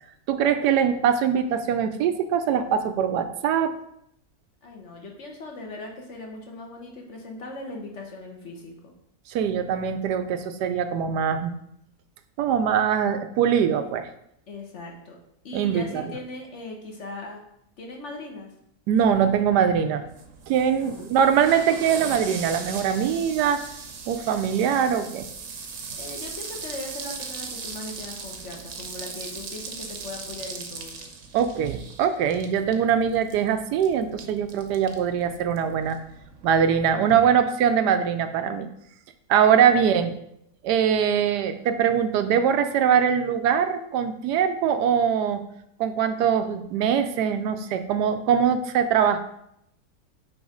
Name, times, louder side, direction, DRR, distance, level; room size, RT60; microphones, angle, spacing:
voice 1, 0.3-3.8 9.3-11.5 12.4-14.1 15.5-16.0 18.9-20.0 20.5-23.6 24.1-25.3 31.3-36.0 36.4-38.7 39.3-40.1 40.6-45.4 45.8-49.2, right 8 dB, 85° right, 9 dB, 1.2 m, -22 dB
voice 2, 4.6-8.9 14.5-15.2 15.4-17.4 17.8-18.5 20.8-21.4 26.0-31.1 39.5-39.6, left 2 dB, 50° left, 0 dB, 1.2 m, -39 dB
sound 1, 19.0-37.2, right 5 dB, 60° right, 1.0 m, -39 dB
6.2 x 3.3 x 5.0 m, 0.75 s
omnidirectional pair, 1.7 m